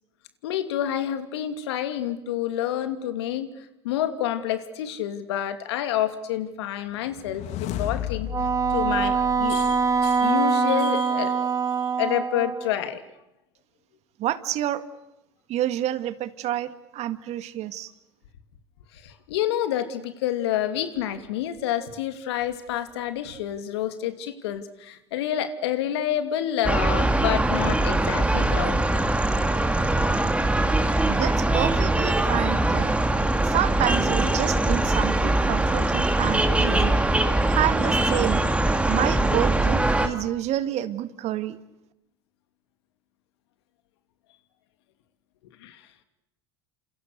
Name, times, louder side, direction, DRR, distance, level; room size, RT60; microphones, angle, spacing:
voice 1, 0.4-8.3 8.7-11.4 11.8-13.0 18.9-29.0 45.6-45.8, left 11 dB, 75° left, 9 dB, 2.7 m, -28 dB
sound 1, 7.1-10.3, left 11 dB, 55° left, 1.5 m, -34 dB
Wind instrument woodwind instrument, 8.3-12.8, right 5 dB, 25° right, 1.5 m, -24 dB
voice 2, 14.2-14.8 15.5-17.9 31.1-32.9 33.4-37.0 37.5-38.4 38.9-41.6, right 13 dB, 50° right, 11 dB, 1.9 m, -28 dB
sound 2, 26.6-40.1, right 2 dB, 10° right, 2.9 m, -22 dB
29.5 x 27.0 x 6.7 m, 0.90 s
hypercardioid pair, 80°, 14 cm